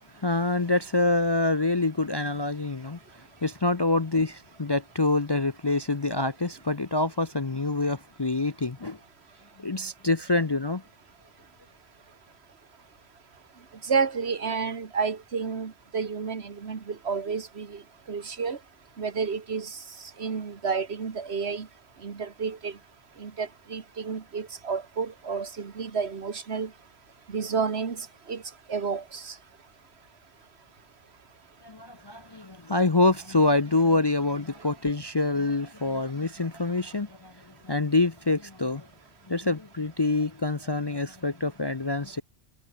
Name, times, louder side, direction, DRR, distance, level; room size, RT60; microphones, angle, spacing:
voice 1, 0.1-3.0 3.4-9.0 9.6-10.8 31.6-38.9 39.3-42.2, left 2 dB, 25° left, 0.6 m, -26 dB
voice 2, 13.9-17.8 18.1-18.6 19.0-19.8 20.2-21.7 22.0-22.7 23.2-26.7 27.3-28.4 28.7-29.3, right 5 dB, 65° right, 1.7 m, -30 dB
omnidirectional pair, 1.2 m